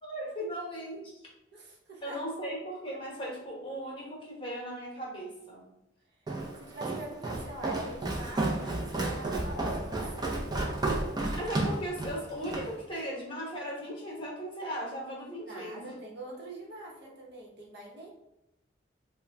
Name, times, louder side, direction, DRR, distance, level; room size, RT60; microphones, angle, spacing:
voice 1, 0.0-1.0 2.0-5.6 11.3-15.9, equal, 25° left, -4 dB, 1.0 m, -37 dB
voice 2, 1.5-2.2 6.6-10.4 15.5-18.1, right 1 dB, 60° right, -3 dB, 0.9 m, -44 dB
Walk footsteps, 6.3-12.7, right 2 dB, 20° right, 0.5 m, -32 dB
3.6 x 2.2 x 3.3 m, 0.86 s
head